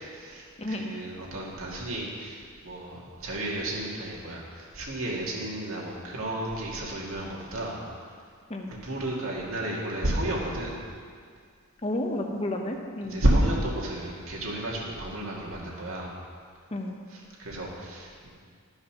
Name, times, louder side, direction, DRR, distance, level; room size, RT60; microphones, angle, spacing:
voice 1, 0.0-7.8 8.7-10.8 13.0-16.1 17.1-18.3, right 1 dB, 70° right, -4 dB, 2.2 m, -31 dB
voice 2, 11.8-13.2 16.7-17.0, left 1 dB, 30° left, 2 dB, 0.9 m, -31 dB
12.5 x 5.6 x 6.0 m, 2.1 s
head